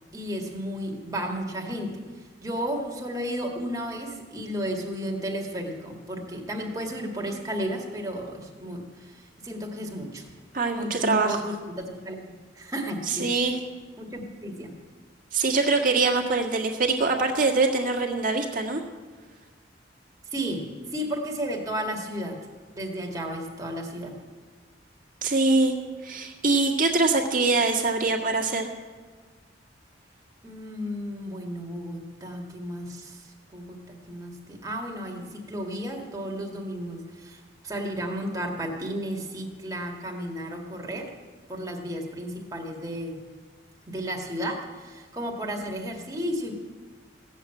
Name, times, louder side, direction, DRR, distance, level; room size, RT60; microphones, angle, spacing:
voice 1, 0.1-2.1 2.4-10.3 10.7-12.2 12.6-13.3 14.0-14.7 20.3-20.6 20.9-22.4 22.7-24.2 30.4-41.1 41.5-43.2 43.9-46.6, equal, 20° right, 0 dB, 1.9 m, -33 dB
voice 2, 10.5-11.4 13.1-13.6 15.3-18.8 25.2-25.7 26.0-28.7, right 3 dB, 45° right, 0 dB, 1.8 m, -23 dB
16.0 x 7.4 x 9.1 m, 1.5 s
head